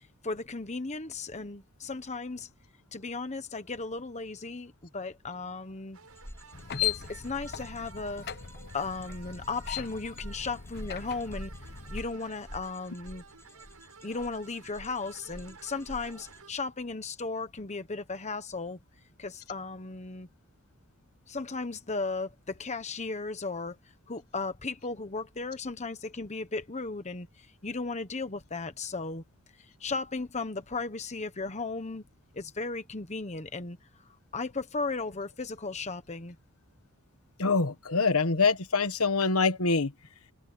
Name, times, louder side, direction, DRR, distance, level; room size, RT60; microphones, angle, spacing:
voice 1, 0.2-2.5 2.9-6.0 6.8-8.2 8.7-11.5 11.9-13.2 14.0-18.8 19.2-20.3 21.3-23.8 24.1-27.3 27.6-29.2 29.8-32.0 32.3-33.8 34.3-36.4, left 3 dB, 30° left, 1.2 m, -35 dB
sound 1, 5.9-16.5, right 5 dB, 80° right, 7.2 m, -53 dB
sound 2, 6.1-16.4, equal, 10° left, 6.4 m, -47 dB
sound 3, 6.5-12.1, left 11 dB, 45° left, 0.9 m, -38 dB
voice 2, 37.4-39.9, left 4 dB, 70° left, 1.5 m, -25 dB
head